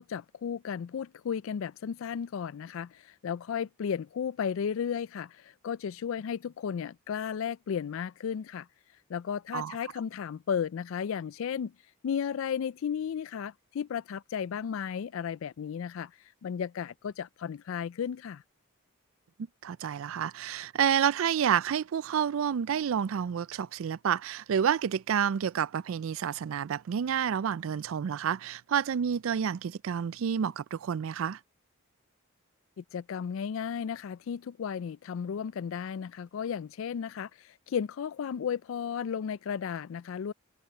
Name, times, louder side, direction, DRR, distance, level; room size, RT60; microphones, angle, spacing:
voice 1, 0.0-8.7 9.1-11.7 12.0-16.1 16.4-18.4 32.8-40.3, left 7 dB, 65° left, 0.3 m, -34 dB
voice 2, 19.6-31.4, right 8 dB, 65° right, 0.3 m, -29 dB
head